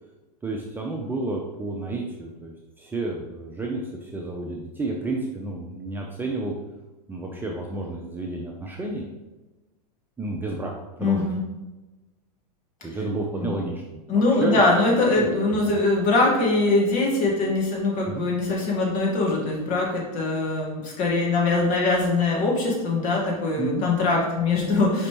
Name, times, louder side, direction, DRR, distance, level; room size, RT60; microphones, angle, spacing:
voice 1, 0.4-6.5 7.1-9.0 10.2-10.7 11.0-11.3 12.8-14.6 15.1-15.7 18.1-18.2 23.6-23.9, right 2 dB, 10° right, -1 dB, 0.4 m, -31 dB
voice 2, 11.0-11.4 13.4-13.5 14.1-25.1, left 2 dB, 40° left, -2 dB, 1.5 m, -22 dB
5.0 x 3.3 x 2.9 m, 1.1 s
hypercardioid pair, 120°, 21 cm